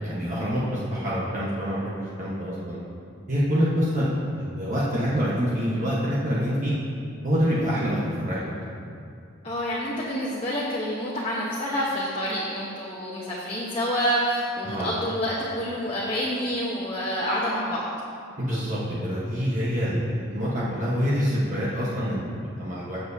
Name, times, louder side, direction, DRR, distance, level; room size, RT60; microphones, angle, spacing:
voice 1, 0.0-2.8 3.3-6.7 7.2-8.6 14.6-14.9 18.4-23.0, equal, 35° right, -7 dB, 1.3 m, -26 dB
voice 2, 9.4-17.8, equal, 25° left, -7 dB, 1.1 m, -28 dB
16.0 x 6.9 x 2.8 m, 2.4 s
head